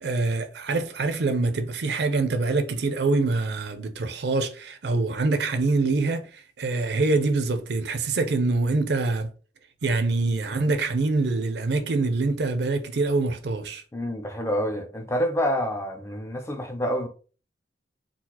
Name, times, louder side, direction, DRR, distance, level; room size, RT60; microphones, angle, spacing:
voice 1, 0.0-9.3 9.8-13.8, right 3 dB, 65° right, 0.5 m, -25 dB
voice 2, 13.9-17.1, equal, 15° left, 0.4 m, -27 dB
3.9 x 2.4 x 2.8 m
head